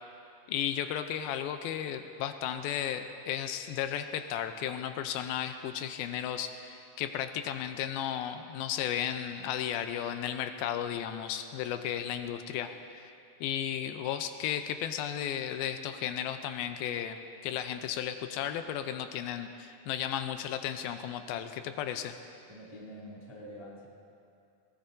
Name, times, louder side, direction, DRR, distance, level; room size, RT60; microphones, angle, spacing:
voice 1, 0.5-13.1 13.4-22.2, left 10 dB, 85° left, 8 dB, 2.4 m, -34 dB
voice 2, 22.5-23.8, equal, 15° right, -5 dB, 1.0 m, -46 dB
21.0 x 19.0 x 2.6 m, 2.5 s
omnidirectional pair, 4.4 m